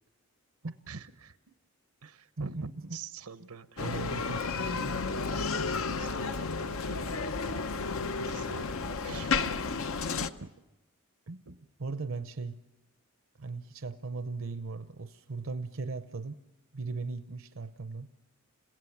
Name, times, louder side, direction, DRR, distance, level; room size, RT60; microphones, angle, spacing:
voice 1, 0.9-1.4 2.0-4.0 4.2-4.4 5.8-7.7 8.3-9.3 11.5-11.6, right 5 dB, 85° right, 12 dB, 1.0 m, -46 dB
voice 2, 2.4-3.0 3.8-5.1 10.2-10.3 11.3-12.6 13.4-16.4 16.7-18.1, right 3 dB, 60° right, 10 dB, 0.7 m, -38 dB
Bicycle, 3.8-10.3, left 4 dB, 65° left, 0.7 m, -32 dB
29.5 x 16.5 x 7.2 m, 0.99 s
head